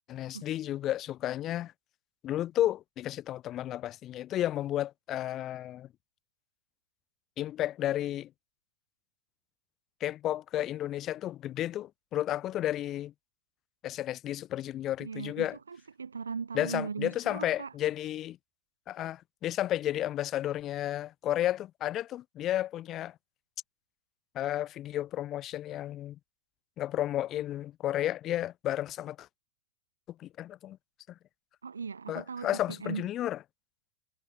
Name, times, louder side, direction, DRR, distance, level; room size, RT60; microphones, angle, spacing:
voice 1, 0.1-1.7 2.2-5.9 7.4-8.3 10.0-13.1 13.8-15.6 16.5-18.4 18.9-23.1 24.3-26.2 26.8-29.3 30.2-30.8 32.1-33.4, left 13 dB, 30° left, 1.2 m, -32 dB
voice 2, 15.0-17.7 31.6-33.1, right 5 dB, 75° right, 1.5 m, -38 dB
figure-of-eight pair, 90°, 0 cm